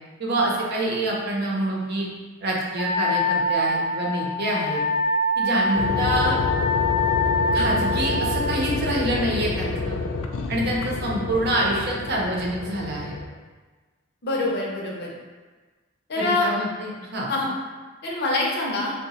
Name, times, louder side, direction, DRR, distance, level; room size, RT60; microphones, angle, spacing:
voice 1, 0.2-2.1 2.4-4.8 5.4-6.4 7.5-10.0 10.5-13.1 16.2-17.3, right 1 dB, 55° right, -3 dB, 0.6 m, -26 dB
Wind instrument woodwind instrument, 2.8-8.4, left 2 dB, 20° left, 0.7 m, -24 dB
sound 1, 5.8-13.2, left 3 dB, 90° left, 0.3 m, -28 dB
voice 2, 14.2-15.1 16.1-16.5 17.3-17.5 18.0-18.9, left 2 dB, 55° left, -3 dB, 0.7 m, -25 dB
2.8 x 2.1 x 4.0 m, 1.4 s
head